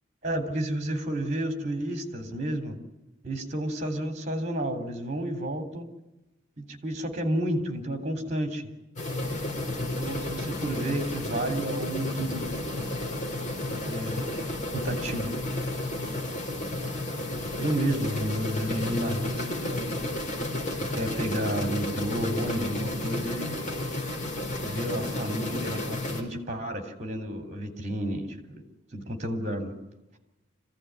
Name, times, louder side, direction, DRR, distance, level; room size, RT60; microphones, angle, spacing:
voice 1, 0.2-2.8 3.2-5.9 6.6-8.6 9.8-12.5 12.7-12.9 13.9-14.3 14.7-15.4 17.6-20.0 20.7-23.6 24.6-28.6 28.9-29.7, right 1 dB, 35° right, 6 dB, 3.6 m, -31 dB
sound 1, 9.0-26.2, left 1 dB, 40° left, 4.7 m, -32 dB
26.5 x 16.0 x 9.7 m, 0.99 s
head